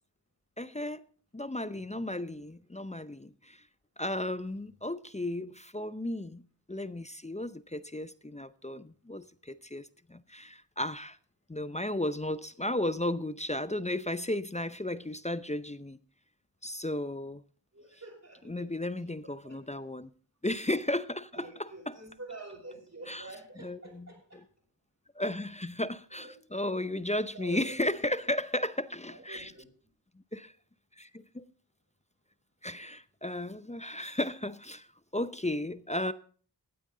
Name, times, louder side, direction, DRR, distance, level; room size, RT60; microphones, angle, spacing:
voice 1, 0.6-1.0 1.3-3.6 4.0-11.2 11.5-16.0 16.6-17.4 18.5-20.1 20.4-21.5 23.1-23.3 23.6-24.1 25.2-29.5 30.3-30.5 31.0-31.5 32.6-34.9 35.1-36.1, left 1 dB, 15° left, 0.6 m, -34 dB
voice 2, 1.7-2.0 2.3-2.4 17.7-18.7 19.2-19.8 21.3-24.4 25.4-25.5 26.1-26.3 27.3-28.3 29.1-29.6, right 2 dB, 40° right, 5.8 m, -48 dB
15.5 x 9.3 x 3.9 m
wide cardioid pair, 45°, 42 cm